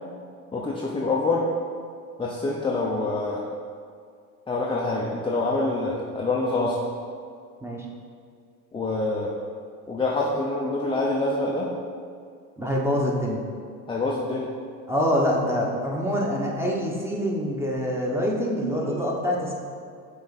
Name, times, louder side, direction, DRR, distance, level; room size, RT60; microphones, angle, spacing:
voice 1, 0.5-1.5 2.2-3.4 4.5-6.8 8.7-9.3 9.9-11.7 13.9-14.5 18.9-19.0, left 2 dB, 15° left, -3 dB, 0.6 m, -26 dB
voice 2, 12.6-13.4 14.9-19.5, equal, 5° right, -2 dB, 1.1 m, -25 dB
6.3 x 3.9 x 4.1 m, 2.2 s
supercardioid pair, 90°, 39 cm